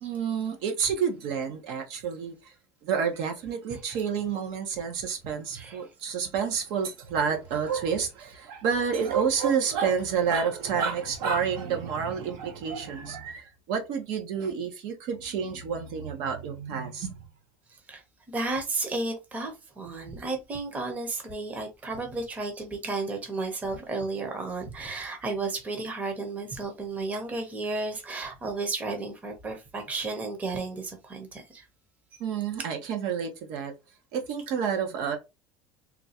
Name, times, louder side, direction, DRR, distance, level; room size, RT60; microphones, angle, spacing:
voice 1, 0.0-2.3 2.8-17.1 32.2-33.7 34.1-35.2, right 6 dB, 65° right, 0.9 m, -29 dB
voice 2, 5.5-5.9 17.9-18.0 18.3-31.7, right 3 dB, 20° right, 0.9 m, -33 dB
3.7 x 2.3 x 2.8 m
cardioid pair, 145°, 7 cm